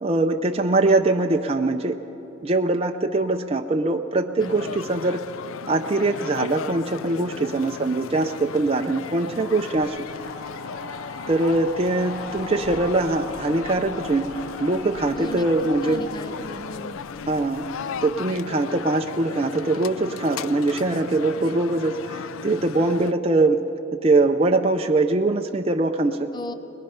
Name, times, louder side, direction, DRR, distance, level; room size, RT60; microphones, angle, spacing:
voice 1, 0.0-2.0 2.4-5.2 5.7-10.1 11.3-14.3 14.6-16.1 17.3-17.7 18.0-23.6 23.9-26.3, right 2 dB, 30° right, 3 dB, 0.6 m, -22 dB
sound 1, 4.4-23.1, left 7 dB, 85° left, 0.4 m, -36 dB
voice 2, 4.4-4.7 15.1-15.5 15.8-17.0 26.3-26.5, left 1 dB, 20° left, 10 dB, 0.6 m, -36 dB
sound 2, 9.4-18.4, left 1 dB, 50° left, 1.4 m, -40 dB
22.5 x 21.0 x 5.6 m, 3.0 s
head